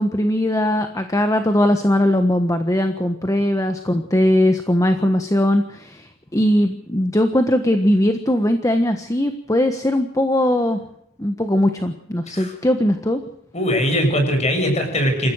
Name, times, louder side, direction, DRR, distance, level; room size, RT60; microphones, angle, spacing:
voice 1, 0.0-10.8 11.2-13.2, left 1 dB, 15° left, 7 dB, 1.3 m, -19 dB
voice 2, 13.5-15.3, equal, 35° left, 4 dB, 7.1 m, -20 dB
28.0 x 15.0 x 6.5 m, 0.76 s
head